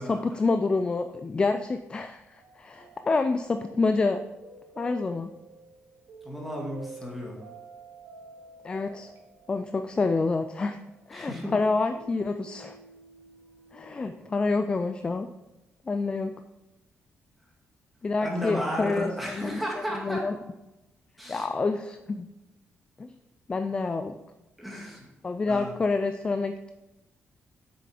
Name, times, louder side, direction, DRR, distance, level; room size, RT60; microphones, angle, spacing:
voice 1, 0.1-4.2 4.8-5.3 8.6-9.1 9.5-10.8 11.1-12.8 13.7-15.3 15.9-16.3 18.0-19.6 19.9-20.4 21.3-22.3 23.0-23.1 23.5-24.2 25.2-26.7, left 3 dB, 20° left, 8 dB, 0.4 m, -28 dB
sound 1, 2.3-14.4, right 3 dB, 60° right, 2.2 m, -50 dB
voice 2, 6.2-7.4 11.1-11.5 18.2-20.3 21.2-21.5 24.6-25.1 25.5-25.7, equal, ahead, -2 dB, 2.1 m, -33 dB
7.8 x 6.7 x 5.0 m, 0.98 s
cardioid pair, 160°, 4 cm